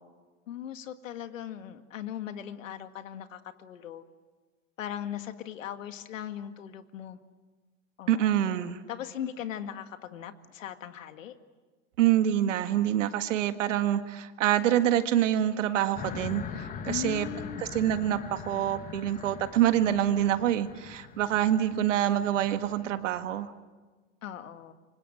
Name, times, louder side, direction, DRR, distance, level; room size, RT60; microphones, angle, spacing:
voice 1, 0.5-4.0 4.8-7.2 8.0-11.4 16.9-17.7 24.2-24.7, left 10 dB, 85° left, 9 dB, 2.0 m, -39 dB
voice 2, 8.1-8.8 12.0-17.3 17.7-23.5, right 11 dB, 70° right, 9 dB, 1.8 m, -26 dB
sound 1, 15.9-23.4, left 7 dB, 20° left, 1.4 m, -42 dB
28.0 x 24.5 x 7.8 m, 1.3 s
supercardioid pair, 140°, 38 cm